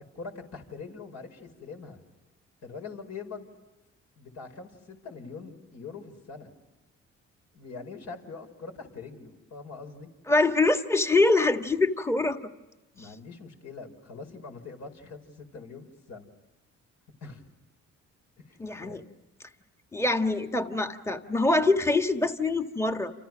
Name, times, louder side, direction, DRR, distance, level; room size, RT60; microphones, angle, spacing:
voice 1, 0.1-2.0 2.6-3.5 4.2-6.5 7.5-10.1 12.9-16.3 17.2-17.5 18.4-19.0, left 4 dB, 60° left, 5 dB, 5.5 m, -43 dB
voice 2, 10.3-12.4 18.6-19.0 19.9-23.1, left 2 dB, 10° left, 7 dB, 1.6 m, -24 dB
29.5 x 28.5 x 6.3 m, 1.1 s
cardioid pair, 90°, 30 cm